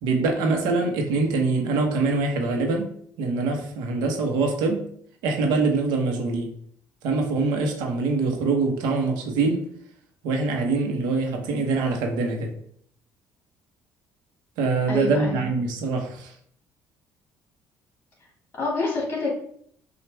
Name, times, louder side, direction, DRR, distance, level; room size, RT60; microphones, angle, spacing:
voice 1, 0.0-2.9 3.2-4.9 5.2-6.5 7.0-9.7 10.2-12.5 14.6-16.3, right 3 dB, 85° right, 3 dB, 1.0 m, -24 dB
voice 2, 14.9-15.5 18.6-19.3, left 3 dB, 30° left, -3 dB, 1.9 m, -27 dB
6.0 x 2.5 x 3.4 m, 0.63 s
cardioid pair, 105°, 7 cm